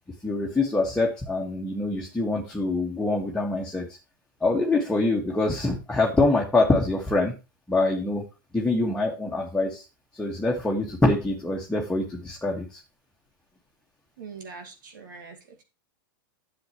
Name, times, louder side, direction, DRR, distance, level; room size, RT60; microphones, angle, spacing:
voice 1, 0.2-3.9 4.4-7.3 7.7-8.2 8.5-9.8 10.1-12.8, left 2 dB, 5° left, -2 dB, 1.9 m, -25 dB
voice 2, 14.2-15.6, right 5 dB, 65° right, 3 dB, 2.3 m, -43 dB
11.5 x 7.4 x 3.2 m, 0.28 s
hypercardioid pair, 100°, 11 cm